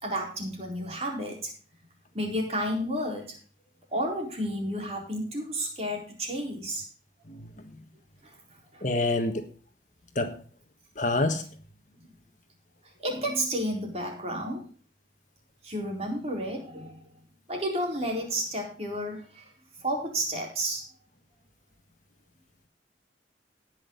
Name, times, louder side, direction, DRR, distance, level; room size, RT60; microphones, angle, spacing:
voice 1, 0.0-1.5 2.1-3.4 3.9-6.9 8.2-8.4 8.7-8.9 13.0-14.7 15.6-17.0 17.5-19.5 19.8-20.8, equal, 35° right, 4.3 m, -31 dB
voice 2, 8.8-9.5 10.1-10.4 11.0-11.5, left 2 dB, 40° left, 1.5 m, -27 dB
18.5 x 6.4 x 3.9 m
head